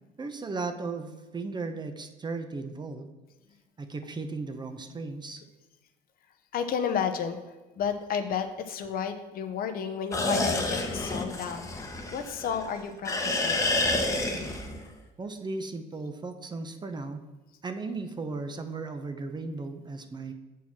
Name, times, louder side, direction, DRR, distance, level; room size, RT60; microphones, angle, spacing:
voice 1, 0.2-3.1 3.8-5.4 15.2-17.2 17.6-20.3, right 3 dB, 25° right, 7 dB, 0.8 m, -36 dB
voice 2, 6.5-7.4 7.8-13.7, left 7 dB, 60° left, 7 dB, 0.8 m, -32 dB
sound 1, 10.1-12.7 13.0-14.9, left 2 dB, 20° left, 1.1 m, -29 dB
7.0 x 4.7 x 6.0 m, 1.1 s
cardioid pair, 110°, 17 cm